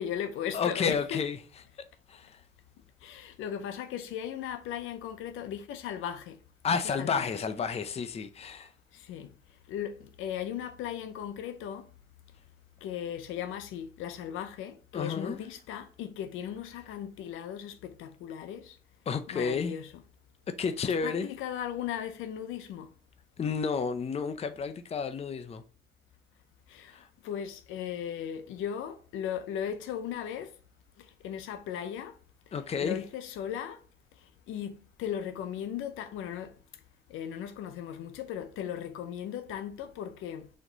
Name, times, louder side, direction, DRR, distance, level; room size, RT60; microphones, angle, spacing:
voice 1, 0.0-1.2 3.0-6.4 6.7-7.3 8.9-9.3 9.7-11.9 12.8-18.8 19.3-19.9 20.8-22.9 26.7-30.5 31.0-32.2 32.5-33.8 34.1-36.5 37.1-40.5, left 9 dB, 85° left, 0.5 m, -37 dB
voice 2, 0.5-1.4 2.1-2.4 6.6-8.7 14.9-15.4 19.1-19.7 20.6-21.3 23.4-25.6 26.9-27.1 32.5-33.0, left 5 dB, 30° left, 0.5 m, -31 dB
4.2 x 3.0 x 3.9 m
cardioid pair, 90°, 20 cm